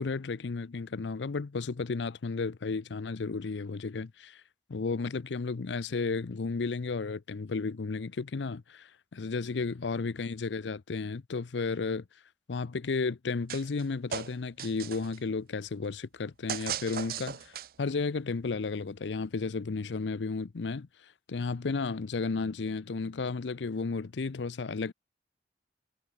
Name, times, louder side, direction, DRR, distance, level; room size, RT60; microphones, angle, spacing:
voice 1, 0.0-4.4 4.7-12.0 12.5-17.5 17.8-24.9, left 4 dB, 90° left, 0.6 m, -33 dB
sound 1, 13.5-13.8 14.1-15.2 16.5-17.9, right 9 dB, 55° right, 0.5 m, -37 dB
head